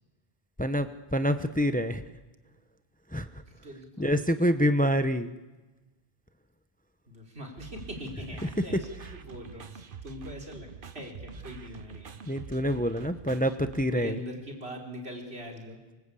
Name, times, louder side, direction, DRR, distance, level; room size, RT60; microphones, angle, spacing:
voice 1, 0.6-2.0 3.1-3.4 4.0-5.3 12.3-14.2, equal, 10° left, 10 dB, 0.8 m, -26 dB
voice 2, 3.5-4.6 7.1-12.4 13.3-13.5 13.9-15.8, equal, 85° right, 1 dB, 4.2 m, -42 dB
sound 1, 7.6-13.8, right 6 dB, 60° right, 1.2 m, -45 dB
25.5 x 23.5 x 8.4 m, 1.2 s
omnidirectional pair, 1.0 m